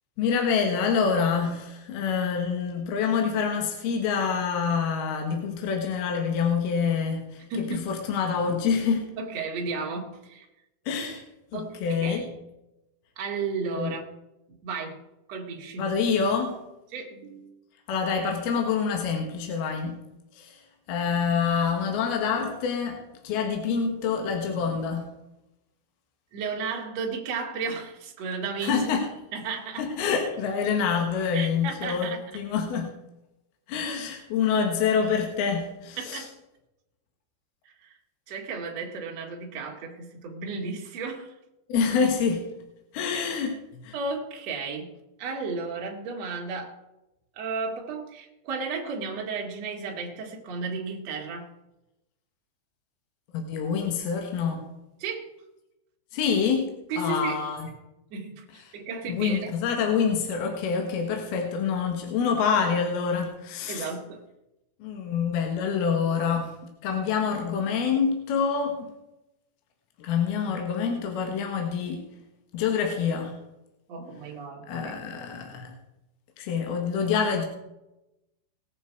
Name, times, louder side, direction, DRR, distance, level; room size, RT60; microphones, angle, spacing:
voice 1, 0.2-9.1 10.9-11.2 11.5-12.2 13.8-13.9 15.8-16.6 17.9-20.0 20.3-20.6 20.9-25.1 28.6-29.1 29.8-32.9 33.7-36.3 41.7-42.5 42.9-43.6 43.8-43.9 53.3-54.6 56.1-56.7 57.0-57.7 58.7-58.8 59.1-63.9 64.8-66.6 66.8-68.9 70.0-72.0 72.5-73.4 74.7-75.7 76.4-77.4, left 6 dB, 65° left, 2.7 m, -26 dB
voice 2, 7.5-7.9 9.2-10.5 11.5-12.3 13.2-14.0 14.6-15.0 15.3-15.9 16.9-17.5 26.3-28.9 29.3-29.9 31.3-32.2 36.0-36.3 37.8-37.9 38.3-41.3 43.1-43.2 43.9-44.9 45.2-46.8 47.4-51.5 55.0-55.3 56.9-57.4 58.1-59.5 63.7-64.2 73.9-75.0, right 4 dB, 55° right, 1.9 m, -33 dB
19.5 x 8.2 x 4.6 m
omnidirectional pair, 5.8 m